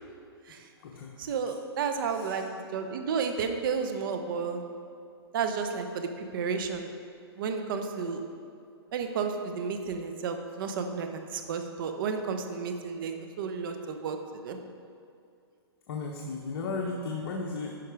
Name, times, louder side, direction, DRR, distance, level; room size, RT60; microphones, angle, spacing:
voice 1, 1.2-2.4 2.7-4.6 5.3-6.9 7.4-8.2 8.9-14.6, right 5 dB, 55° right, 6 dB, 0.9 m, -32 dB
voice 2, 2.1-2.4 15.9-17.7, left 3 dB, 55° left, -1 dB, 1.1 m, -35 dB
11.0 x 4.7 x 4.8 m, 2.4 s
hypercardioid pair, 145°, 14 cm